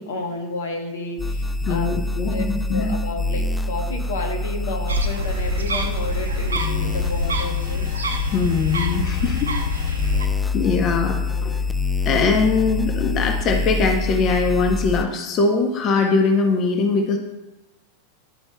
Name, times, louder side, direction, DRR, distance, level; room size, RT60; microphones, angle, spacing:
voice 1, 0.0-1.9 2.3-2.4 2.7-7.9, left 2 dB, 75° left, 3 dB, 1.0 m, -31 dB
sound 1, 1.2-15.0, left 3 dB, 5° left, 0.4 m, -26 dB
voice 2, 1.7-2.9 8.3-10.1 10.5-11.6 12.0-17.2, left 4 dB, 40° left, 3 dB, 0.7 m, -21 dB
sound 2, 4.9-10.3, equal, 90° right, 0.6 m, -26 dB
11.0 x 4.3 x 2.2 m, 1.0 s
hypercardioid pair, 95°, 0 cm